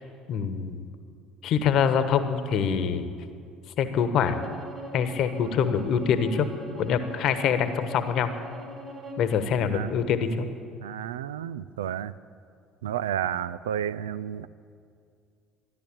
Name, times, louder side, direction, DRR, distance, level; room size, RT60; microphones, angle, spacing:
voice 1, 0.3-0.8 1.4-3.1 3.8-4.4 4.9-6.5 6.8-8.3 9.2-10.5, left 7 dB, 60° left, 10 dB, 1.1 m, -25 dB
Bowed string instrument, 4.2-9.3, right 1 dB, 40° right, 4.3 m, -41 dB
voice 2, 10.8-12.1 12.8-14.5, right 10 dB, 85° right, 16 dB, 0.3 m, -31 dB
13.5 x 11.0 x 8.7 m, 2.3 s
hypercardioid pair, 65°, 0 cm